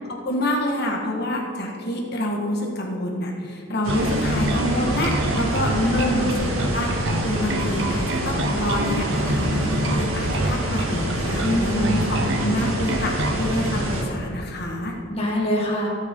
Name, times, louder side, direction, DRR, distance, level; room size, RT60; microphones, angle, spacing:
voice 1, 0.1-15.0, left 1 dB, 50° left, 0 dB, 1.7 m, -27 dB
sound 1, 3.8-14.0, right 1 dB, 75° right, 2.3 m, -27 dB
Bass guitar, 3.9-13.5, right 1 dB, 55° right, 0.9 m, -27 dB
voice 2, 5.7-6.3 11.4-11.8 15.1-15.9, left 1 dB, 25° left, -2 dB, 2.0 m, -24 dB
17.0 x 8.5 x 3.8 m, 2.4 s
head